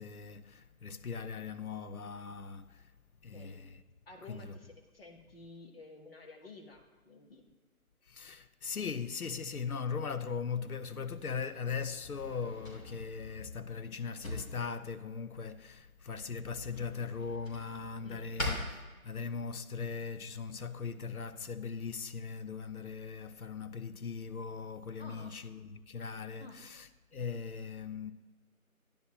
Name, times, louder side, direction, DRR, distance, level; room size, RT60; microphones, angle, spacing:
voice 1, 0.0-2.6 3.2-3.6 4.3-4.4 8.1-18.6 19.0-26.9 27.1-28.1, left 5 dB, 75° left, 0.7 m, -39 dB
voice 2, 4.1-7.4 18.0-18.3 25.0-25.4 26.4-26.6, left 3 dB, 40° left, 1.3 m, -52 dB
Drawer open or close, 11.0-19.5, left 2 dB, 60° left, 3.2 m, -44 dB
11.0 x 10.0 x 3.0 m
figure-of-eight pair, 150°, 44 cm